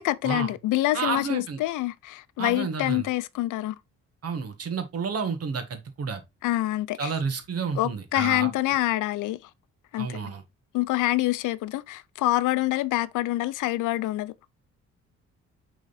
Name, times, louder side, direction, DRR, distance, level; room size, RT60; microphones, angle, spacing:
voice 1, 0.0-3.7 6.4-7.1 7.7-9.5 9.9-10.3 10.7-14.3, left 17 dB, 85° left, 0.6 m, -26 dB
voice 2, 0.9-1.6 2.4-3.1 4.2-6.2 7.0-8.5 10.0-10.4, right 5 dB, 55° right, 1.7 m, -30 dB
6.1 x 3.9 x 4.1 m
cardioid pair, 90°, 30 cm